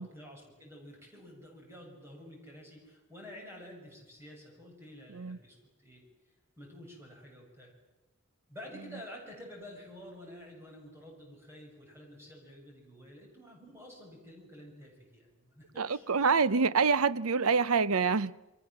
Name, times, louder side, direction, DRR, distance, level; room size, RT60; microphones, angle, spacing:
voice 1, 0.0-6.0 6.6-7.7 8.5-16.3, equal, 10° right, 7.0 m, -50 dB
voice 2, 15.8-18.3, right 5 dB, 90° right, 0.8 m, -26 dB
28.5 x 23.5 x 7.5 m
head